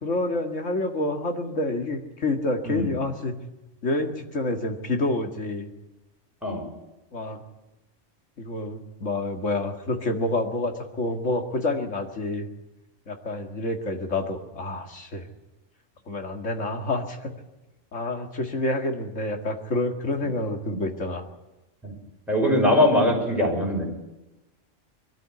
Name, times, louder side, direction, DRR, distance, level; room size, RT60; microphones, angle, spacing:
voice 1, 0.0-3.3 3.8-5.7 7.1-7.4 8.4-12.5 13.1-15.3 16.1-17.3 17.9-21.2, left 2 dB, 75° left, 3 dB, 2.3 m, -28 dB
voice 2, 22.3-23.8, left 1 dB, ahead, -2 dB, 5.9 m, -21 dB
22.5 x 13.5 x 9.7 m, 1.0 s
omnidirectional pair, 1.3 m